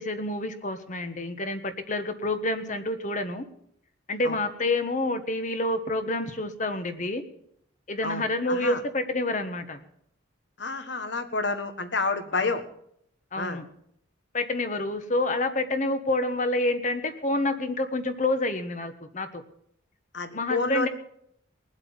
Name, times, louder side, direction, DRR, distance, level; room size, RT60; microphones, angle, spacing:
voice 1, 0.0-3.5 4.1-7.2 7.9-9.8 12.3-12.5 13.3-13.6 14.3-19.4 20.3-20.9, left 2 dB, 40° left, 8 dB, 1.3 m, -28 dB
voice 2, 8.0-8.8 10.6-12.6 13.3-13.6 20.1-20.9, left 3 dB, 60° left, 8 dB, 1.5 m, -29 dB
20.5 x 8.0 x 7.2 m, 0.71 s
head